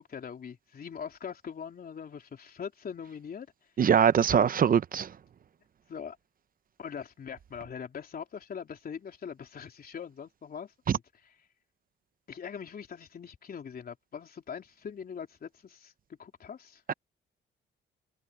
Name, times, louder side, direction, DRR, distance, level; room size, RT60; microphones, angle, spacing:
voice 1, 0.0-3.5 4.3-4.5 5.9-6.2 6.8-11.0 12.3-16.8, left 7 dB, 50° left, 3.8 m, -42 dB
voice 2, 3.8-5.2 10.9-11.0 16.9-17.0, right 8 dB, 45° right, 0.9 m, -23 dB
cardioid pair, 90°, 20 cm